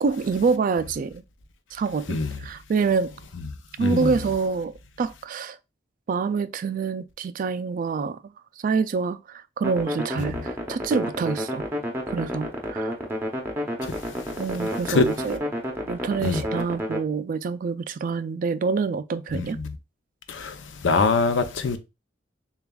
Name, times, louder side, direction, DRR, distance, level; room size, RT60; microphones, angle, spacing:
voice 1, 0.0-1.2 1.7-3.1 3.8-5.6 6.1-11.7 12.1-13.0 14.4-15.4 15.9-19.6, right 5 dB, 45° right, 0.3 m, -26 dB
voice 2, 3.8-4.1 10.2-10.3 14.9-15.0 16.2-16.4 19.3-19.6 20.3-21.8, left 4 dB, 80° left, 0.6 m, -23 dB
sound 1, 9.6-17.0, equal, 10° right, 0.7 m, -30 dB
6.8 x 2.4 x 2.3 m
head